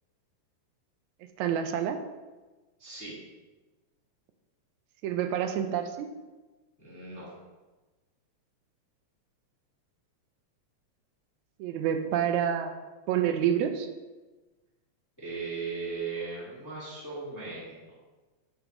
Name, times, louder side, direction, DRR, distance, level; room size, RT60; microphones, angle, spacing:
voice 1, 1.4-2.0 5.0-6.1 11.6-12.7 13.1-13.9, right 9 dB, 85° right, 6 dB, 1.9 m, -28 dB
voice 2, 2.8-3.2 6.8-7.3 15.2-18.0, right 4 dB, 10° left, -8 dB, 1.0 m, -37 dB
8.8 x 4.2 x 3.0 m, 1.2 s
omnidirectional pair, 3.3 m